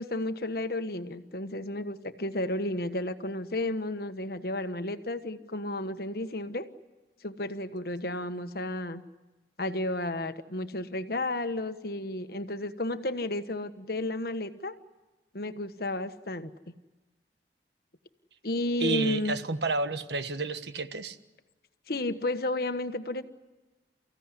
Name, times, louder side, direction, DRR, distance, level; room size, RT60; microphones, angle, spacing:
voice 1, 0.0-6.7 7.2-9.0 9.6-14.7 15.3-16.5 18.4-19.3 21.9-23.2, left 1 dB, 60° left, 10 dB, 1.4 m, -32 dB
voice 2, 18.8-21.2, right 3 dB, 75° right, 10 dB, 1.4 m, -30 dB
30.0 x 16.0 x 10.0 m, 1.2 s
head